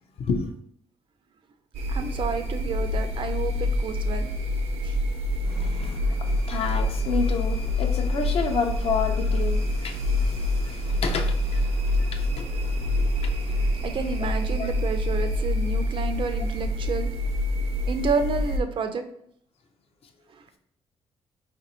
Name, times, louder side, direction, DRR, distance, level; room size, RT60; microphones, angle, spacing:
voice 1, 0.2-0.5 5.4-14.0 14.5-14.7, left 5 dB, 65° left, 5 dB, 0.6 m, -31 dB
sound 1, 1.7-18.6, left 1 dB, 80° right, 0.7 m, -26 dB
voice 2, 1.9-4.3 4.8-4.9 13.8-17.1 17.9-19.0, right 5 dB, 50° right, 8 dB, 0.4 m, -30 dB
2.9 x 2.6 x 4.2 m, 0.70 s
cardioid pair, 120°, 11 cm